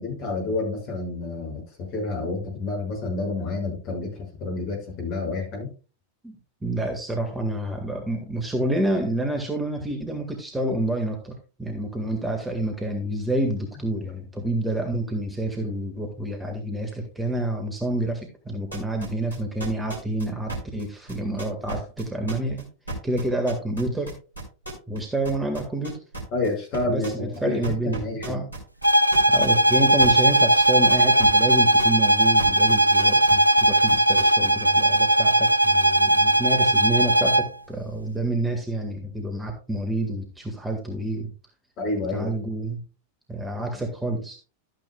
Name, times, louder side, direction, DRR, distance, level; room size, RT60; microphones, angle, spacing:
voice 1, 0.0-1.6 1.9-5.7 26.3-28.3 41.8-42.3 43.5-43.6, left 3 dB, 40° left, 0 dB, 6.1 m, -29 dB
voice 2, 6.2-11.3 11.6-22.6 23.0-24.1 24.9-26.0 26.8-28.5 29.3-41.3 42.0-42.8 43.3-44.4, right 1 dB, 10° right, 4 dB, 1.7 m, -28 dB
sound 1, 18.7-25.0 25.2-26.5 26.7-27.4 27.6-32.1 32.4-34.5, right 2 dB, 85° left, 4.4 m, -35 dB
sound 2, 28.8-37.5, right 1 dB, 85° right, 0.4 m, -18 dB
13.0 x 9.1 x 2.3 m, 0.33 s
figure-of-eight pair, 90°, 0 cm